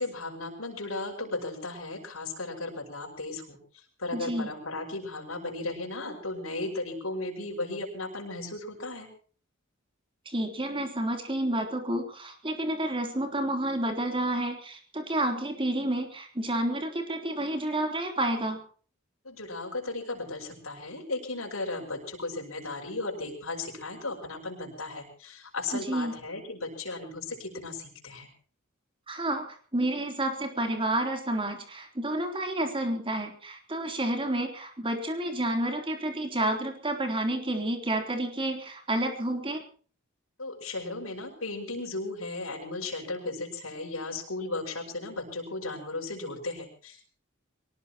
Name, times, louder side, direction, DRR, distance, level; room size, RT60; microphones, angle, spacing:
voice 1, 0.0-9.1 19.2-28.3 40.4-47.1, left 2 dB, 85° left, -1 dB, 5.9 m, -36 dB
voice 2, 4.1-4.5 10.3-18.6 25.7-26.2 29.1-39.6, right 1 dB, 25° right, 4 dB, 3.5 m, -30 dB
23.5 x 19.0 x 3.0 m, 0.42 s
head